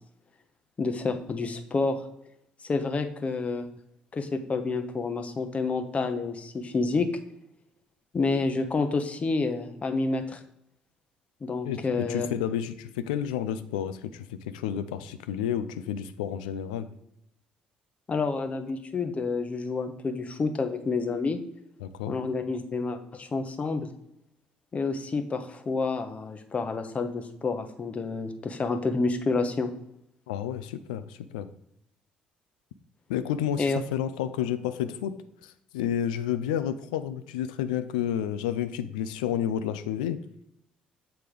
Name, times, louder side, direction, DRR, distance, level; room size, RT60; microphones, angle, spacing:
voice 1, 0.8-2.0 2.6-3.7 4.1-7.1 8.1-10.4 11.4-12.3 18.1-21.4 22.1-23.9 24.7-29.7 33.6-33.8, left 3 dB, 30° left, 7 dB, 0.8 m, -29 dB
voice 2, 11.6-16.9 21.8-22.1 30.3-31.5 33.1-35.1 35.4-40.2, left 10 dB, 70° left, 11 dB, 0.3 m, -30 dB
7.0 x 3.3 x 5.0 m, 0.78 s
figure-of-eight pair, 50°, 4 cm